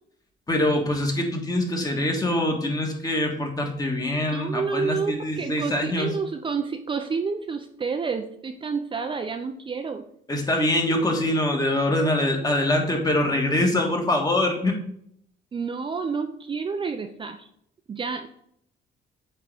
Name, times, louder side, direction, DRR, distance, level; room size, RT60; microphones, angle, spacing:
voice 1, 0.5-6.1 10.3-14.8, left 1 dB, 20° left, 2 dB, 1.4 m, -24 dB
voice 2, 4.3-10.0 15.5-17.5 17.9-18.3, right 5 dB, 30° right, 6 dB, 0.5 m, -29 dB
8.0 x 3.7 x 3.4 m, 0.70 s
cardioid pair, 100°, 18 cm